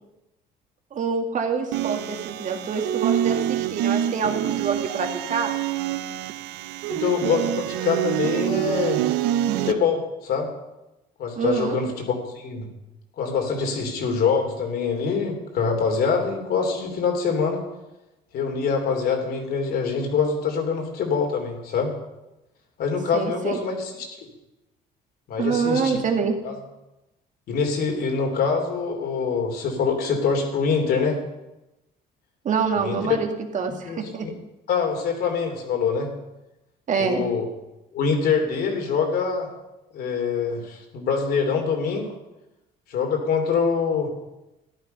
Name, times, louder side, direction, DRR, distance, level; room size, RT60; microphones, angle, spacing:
voice 1, 0.9-5.5 11.4-11.8 23.1-23.6 25.4-26.3 32.4-33.3 33.5-34.3 36.9-37.2, right 5 dB, 50° right, 4 dB, 2.2 m, -26 dB
sound 1, 1.7-9.7, right 12 dB, 85° right, 0.7 m, -26 dB
voice 2, 6.9-9.0 9.5-10.5 11.2-12.7 13.2-17.6 18.3-21.9 22.8-24.1 25.3-26.0 26.4-26.5 27.5-31.2 32.7-33.0 33.7-34.3 34.7-36.1 37.0-37.5 37.9-39.5 39.9-42.1 42.9-44.1, left 5 dB, 65° left, 3 dB, 3.3 m, -24 dB
14.0 x 11.0 x 5.5 m, 0.97 s
cardioid pair, 110°, 17 cm